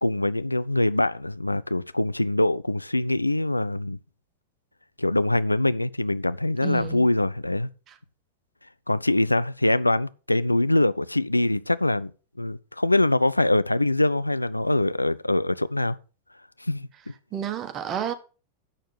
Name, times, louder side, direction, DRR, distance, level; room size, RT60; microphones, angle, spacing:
voice 1, 0.0-4.0 5.0-7.7 8.9-12.1 12.4-16.0 16.6-16.9, left 2 dB, 85° left, 0.4 m, -23 dB
voice 2, 6.6-7.1 7.9-8.0 17.3-18.1, right 9 dB, 30° right, 1.3 m, -31 dB
7.7 x 6.5 x 6.7 m
figure-of-eight pair, 90°, 0 cm